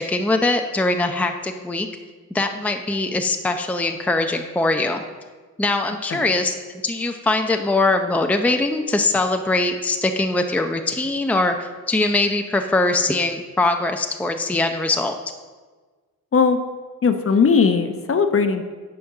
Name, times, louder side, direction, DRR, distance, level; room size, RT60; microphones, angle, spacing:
voice 1, 0.0-1.9 2.3-5.0 5.6-6.5 6.8-15.2, left 2 dB, 5° left, 5 dB, 0.6 m, -22 dB
voice 2, 17.0-18.6, left 5 dB, 40° left, 7 dB, 0.9 m, -18 dB
9.3 x 4.5 x 6.5 m, 1.4 s
cardioid pair, 75°, 35 cm